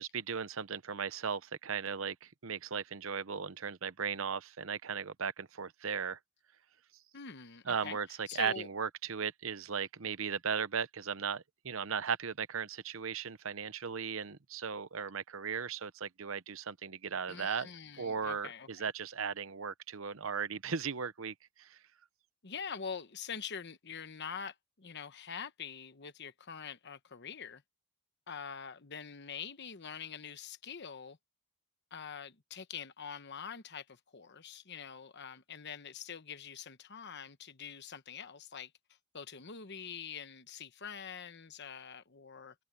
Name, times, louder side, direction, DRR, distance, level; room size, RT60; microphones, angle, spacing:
voice 1, 0.0-6.2 7.7-17.7 18.0-21.8, right 6 dB, 65° right, 0.8 m, -37 dB
voice 2, 7.1-8.7 17.3-18.9 22.4-27.6 28.3-31.2 31.9-38.7 39.1-42.5, left 6 dB, 50° left, 1.1 m, -45 dB
open air
head